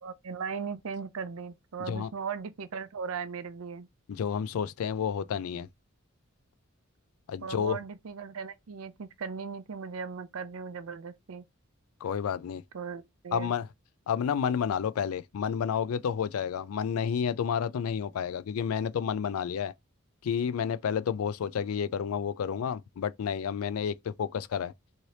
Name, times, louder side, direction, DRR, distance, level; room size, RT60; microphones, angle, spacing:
voice 1, 0.0-3.9 7.4-11.4 12.7-13.5, right 6 dB, 75° right, 0.5 m, -38 dB
voice 2, 4.1-5.7 7.3-7.8 12.0-12.6 13.3-13.7 14.1-19.7 20.2-24.7, left 7 dB, 85° left, 0.3 m, -30 dB
3.2 x 2.7 x 2.7 m
head